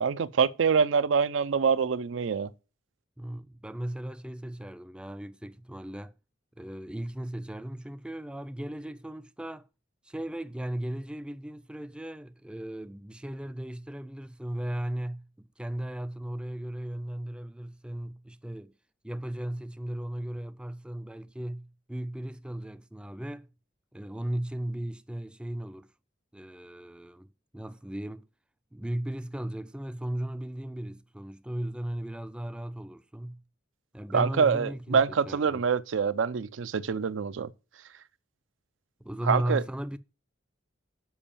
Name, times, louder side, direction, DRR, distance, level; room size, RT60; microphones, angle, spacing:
voice 1, 0.0-2.5 34.1-37.5 39.2-39.6, right 6 dB, 75° right, 0.5 m, -25 dB
voice 2, 3.2-6.1 6.6-9.7 10.0-18.7 19.0-23.5 23.9-25.9 26.3-28.3 28.7-33.4 33.9-35.6 39.0-40.0, right 1 dB, 5° right, 0.3 m, -36 dB
7.1 x 5.1 x 7.0 m
head